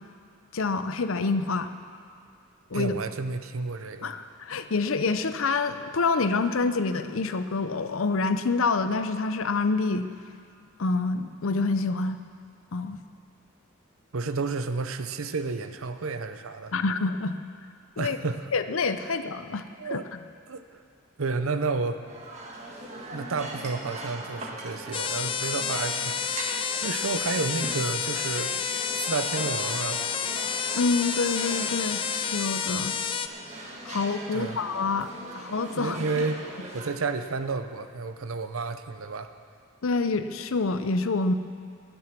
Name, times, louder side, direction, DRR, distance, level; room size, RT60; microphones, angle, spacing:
voice 1, 0.5-1.7 2.7-2.9 4.0-10.1 10.8-12.2 12.7-13.0 16.7-17.4 18.0-18.2 18.5-19.6 19.9-20.2 30.8-32.0 32.3-33.0 33.8-35.1 35.4-36.0 39.8-41.3, left 3 dB, 75° left, 10 dB, 0.6 m, -27 dB
voice 2, 2.7-4.1 14.1-16.7 18.0-18.5 19.1-19.2 19.8-20.0 20.5-20.8 21.2-22.0 23.1-26.4 26.8-28.5 28.9-30.0 34.3-34.6 35.8-36.4 36.7-39.3, right 4 dB, 80° right, 9 dB, 0.7 m, -31 dB
sound 1, 22.0-36.9, right 1 dB, 30° right, 1.5 m, -40 dB
sound 2, 24.9-33.3, left 7 dB, 25° left, 0.3 m, -30 dB
19.0 x 7.9 x 6.0 m, 2.2 s
head